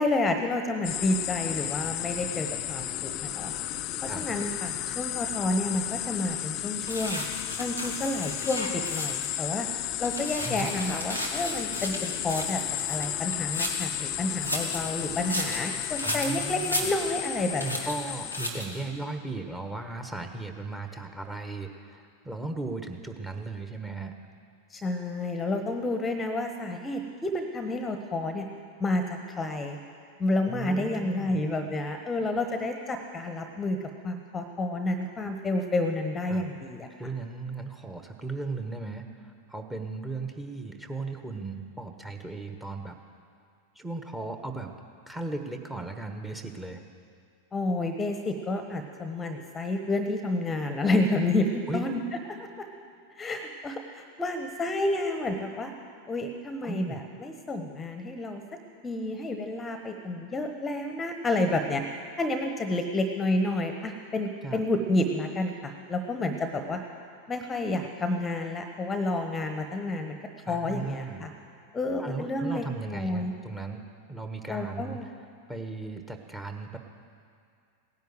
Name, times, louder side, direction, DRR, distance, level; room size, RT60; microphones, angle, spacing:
voice 1, 0.0-3.5 4.0-7.2 7.6-9.7 10.0-12.6 12.9-17.9 24.7-28.5 28.8-29.0 29.4-29.8 30.2-33.8 34.0-36.9 47.5-52.0 52.4-52.5 53.2-55.7 56.1-58.4 58.8-61.8 62.2-66.8 67.3-70.2 70.5-71.3 71.7-73.3 74.5-75.1, left 2 dB, 15° left, 6 dB, 1.2 m, -30 dB
sound 1, 0.8-18.5, left 14 dB, 40° left, 0.5 m, -33 dB
sound 2, 6.9-9.4 9.8-13.9 14.3-17.3 17.6-18.0 18.3-18.8, equal, 90° right, 1.9 m, -35 dB
voice 2, 16.0-16.9 17.6-24.1 30.5-31.4 36.3-36.4 37.0-43.0 43.7-44.7 45.1-46.8 51.7-51.8 56.6-57.0 64.4-64.6 70.5-71.3 72.0-73.8 74.1-75.0 75.5-76.8, right 3 dB, 10° right, 6 dB, 1.4 m, -36 dB
17.0 x 10.5 x 7.9 m, 2.3 s
figure-of-eight pair, 90°, 0 cm